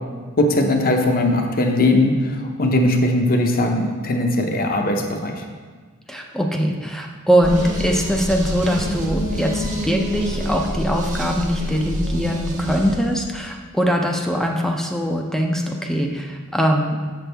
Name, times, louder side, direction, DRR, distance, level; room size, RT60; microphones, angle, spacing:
voice 1, 0.4-5.4, left 1 dB, 45° left, 3 dB, 0.7 m, -19 dB
voice 2, 6.1-17.0, equal, ahead, 1 dB, 0.4 m, -22 dB
sound 1, 7.4-13.5, equal, 35° right, 1.0 m, -26 dB
7.3 x 6.1 x 3.4 m, 1.5 s
head